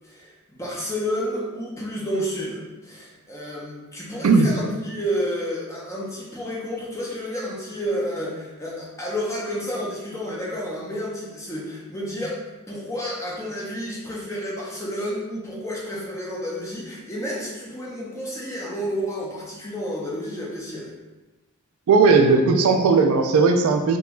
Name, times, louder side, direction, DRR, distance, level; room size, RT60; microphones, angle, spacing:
voice 1, 0.0-12.4 12.7-20.9, equal, 15° left, -5 dB, 0.6 m, -30 dB
voice 2, 21.9-24.0, right 4 dB, 80° right, 5 dB, 0.4 m, -17 dB
3.0 x 2.2 x 3.6 m, 1.2 s
head